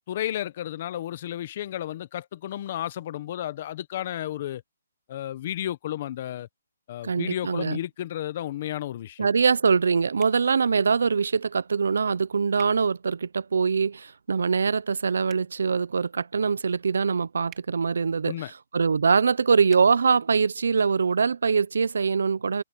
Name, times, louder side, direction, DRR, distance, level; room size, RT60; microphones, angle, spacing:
voice 1, 0.1-4.6 5.1-6.5 6.9-9.3 18.2-18.5, left 12 dB, 30° left, 1.0 m, -32 dB
voice 2, 7.0-7.8 9.2-22.6, right 5 dB, 70° right, 0.7 m, -23 dB
sound 1, 10.2-10.4 12.5-12.7 15.2-15.5 17.5-17.7 19.7-19.9, right 14 dB, 15° right, 2.6 m, -49 dB
hypercardioid pair, 170°, 0 cm